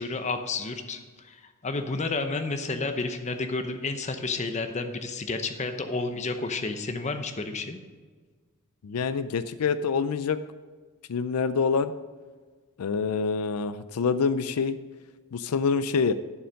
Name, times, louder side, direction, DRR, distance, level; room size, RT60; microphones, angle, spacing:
voice 1, 0.0-7.8, left 3 dB, 30° left, 7 dB, 0.8 m, -31 dB
voice 2, 8.8-10.4 11.1-11.9 12.8-14.8 15.3-16.1, left 5 dB, 85° left, 13 dB, 0.4 m, -26 dB
11.0 x 7.0 x 5.2 m, 1.5 s
head